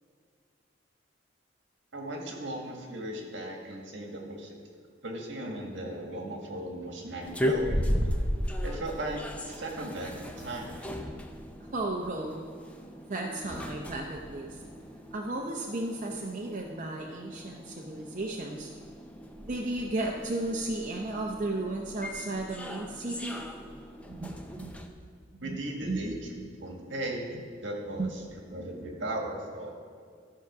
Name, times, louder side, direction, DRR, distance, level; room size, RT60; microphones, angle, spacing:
voice 1, 1.9-4.6 5.0-7.9 8.6-9.2 9.5-10.9 25.4-26.1 26.6-27.3 27.6-29.7, right 1 dB, 70° right, 1 dB, 1.7 m, -37 dB
sound 1, 7.2-24.9, equal, 5° left, 0.6 m, -36 dB
voice 2, 11.6-12.5 13.0-14.6 15.1-18.7 19.4-23.4 24.1-24.8 25.3-25.6 25.8-26.0 28.0-28.1, right 2 dB, 40° right, 0 dB, 0.7 m, -34 dB
13.0 x 4.7 x 6.0 m, 2.1 s
head